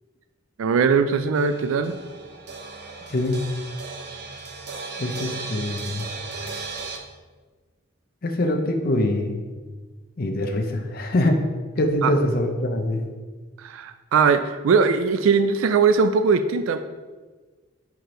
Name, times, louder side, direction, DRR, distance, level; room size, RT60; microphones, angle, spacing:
voice 1, 0.6-2.0 12.0-12.1 13.6-16.8, right 5 dB, 80° right, 9 dB, 0.3 m, -20 dB
sound 1, 1.4-7.0, right 4 dB, 55° right, 0.7 m, -36 dB
voice 2, 3.1-3.4 5.0-6.0 8.2-9.4 10.2-11.4 11.8-13.0, left 1 dB, 45° left, 4 dB, 0.6 m, -23 dB
4.7 x 4.5 x 5.0 m, 1.3 s
head